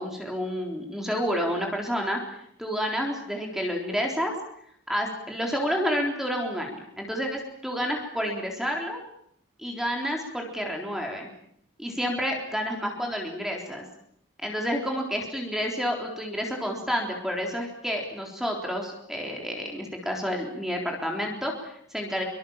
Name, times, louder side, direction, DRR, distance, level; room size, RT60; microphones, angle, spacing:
voice 1, 0.0-2.2 2.6-4.3 4.9-9.0 9.6-11.3 11.8-13.9 14.4-22.2, equal, ahead, 1 dB, 3.8 m, -29 dB
25.5 x 24.0 x 7.3 m, 0.71 s
head